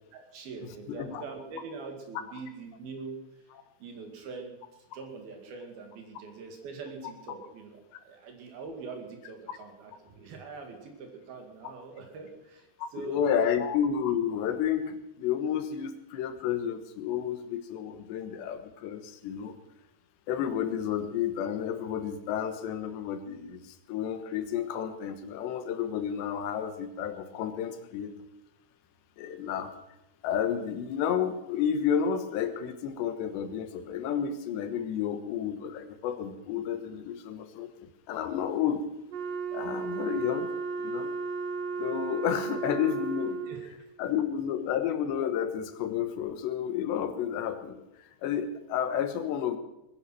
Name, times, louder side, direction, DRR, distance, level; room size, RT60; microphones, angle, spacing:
voice 1, 0.1-3.2 3.8-13.6 43.5-43.9, right 4 dB, 65° right, 3 dB, 3.9 m, -43 dB
voice 2, 0.9-1.2 12.8-19.6 20.3-28.2 29.2-29.7 30.2-38.9 39.5-40.5 40.8-41.1 41.8-43.4 44.0-47.8 48.2-49.6, left 8 dB, 80° left, 9 dB, 3.5 m, -31 dB
Wind instrument woodwind instrument, 39.1-43.8, right 6 dB, 85° right, 3.7 m, -34 dB
21.0 x 10.5 x 6.1 m, 0.91 s
omnidirectional pair, 4.9 m